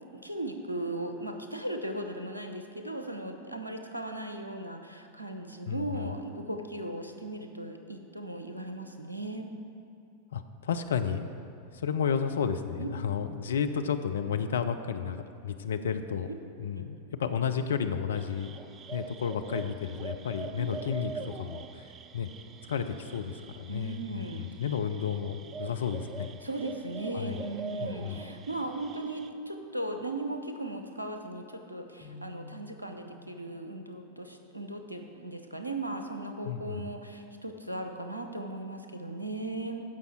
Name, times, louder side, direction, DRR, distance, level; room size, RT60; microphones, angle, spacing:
voice 1, 0.1-9.5 12.8-12.9 16.7-16.9 20.6-20.7 21.2-21.3 23.7-24.4 26.4-39.8, right 2 dB, 85° right, 5 dB, 0.8 m, -37 dB
voice 2, 5.7-6.1 10.3-11.3 11.7-16.3 16.6-18.6 18.9-21.9 22.1-22.3 22.7-26.4 27.1-27.4 27.8-28.2 36.4-36.9, left 7 dB, 65° left, 8 dB, 0.5 m, -32 dB
sound 1, 18.1-29.3, right 5 dB, 25° right, 0.4 m, -44 dB
sound 2, 32.0-38.3, left 4 dB, 35° left, 1.6 m, -55 dB
14.5 x 5.4 x 4.5 m, 2.7 s
figure-of-eight pair, 90°, 0 cm